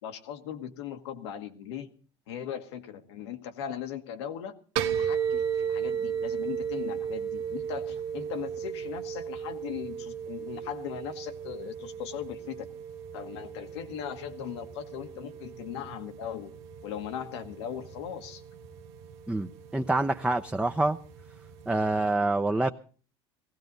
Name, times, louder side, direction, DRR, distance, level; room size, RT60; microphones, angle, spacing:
voice 1, 0.0-1.9 2.3-4.6 5.0-12.6 13.1-16.5 16.8-18.4, left 9 dB, 90° left, 7 dB, 1.4 m, -39 dB
sound 1, 4.8-22.1, right 8 dB, 85° right, 1.2 m, -36 dB
voice 2, 19.3-21.0 21.7-22.7, right 2 dB, 5° right, 7 dB, 0.6 m, -26 dB
17.5 x 16.0 x 4.0 m, 0.40 s
supercardioid pair, 85°, 14 cm